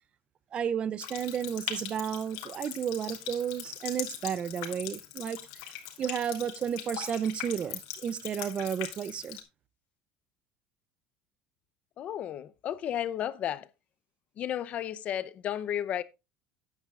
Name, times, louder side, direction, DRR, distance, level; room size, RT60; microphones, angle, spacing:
voice 1, 0.5-5.4 6.0-9.4, right 8 dB, 30° right, 0.5 m, -32 dB
Water tap faucet, 1.0-9.4, left 11 dB, 85° left, 3.0 m, -40 dB
voice 2, 12.0-13.7 14.4-16.0, left 10 dB, 40° left, 0.6 m, -33 dB
13.5 x 9.6 x 2.4 m
cardioid pair, 155°, 4 cm